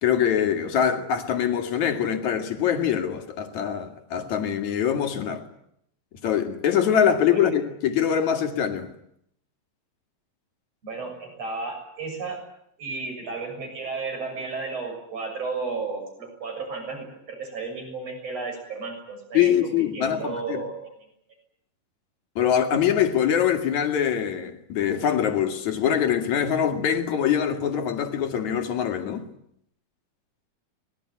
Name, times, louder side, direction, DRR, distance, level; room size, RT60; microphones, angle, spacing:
voice 1, 0.0-5.4 6.2-8.9 19.3-20.6 22.4-29.3, left 9 dB, 60° left, 3.4 m, -23 dB
voice 2, 10.8-12.4 12.8-20.9, right 4 dB, 45° right, 7.7 m, -33 dB
25.0 x 20.5 x 9.5 m
omnidirectional pair, 4.0 m